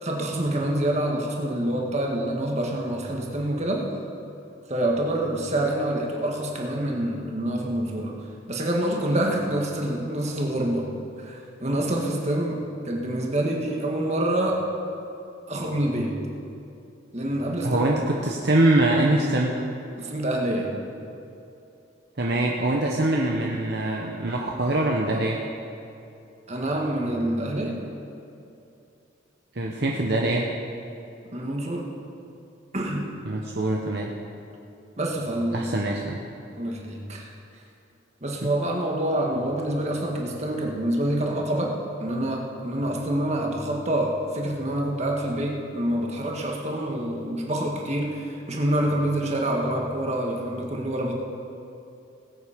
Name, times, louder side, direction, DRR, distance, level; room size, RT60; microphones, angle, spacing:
voice 1, 0.0-3.9 4.7-8.1 8.5-10.9 11.2-12.6 12.8-14.6 15.5-16.1 17.1-17.9 20.0-20.7 26.5-27.8 31.3-31.9 32.7-33.0 35.0-35.7 36.6-37.3 38.2-41.7 42.0-51.1, right 1 dB, 35° right, 0 dB, 1.7 m, -26 dB
voice 2, 17.6-19.5 22.2-25.4 29.5-30.4 33.2-34.1 35.5-36.2, right 1 dB, 55° right, -1 dB, 1.0 m, -23 dB
19.5 x 8.4 x 5.1 m, 2.7 s
head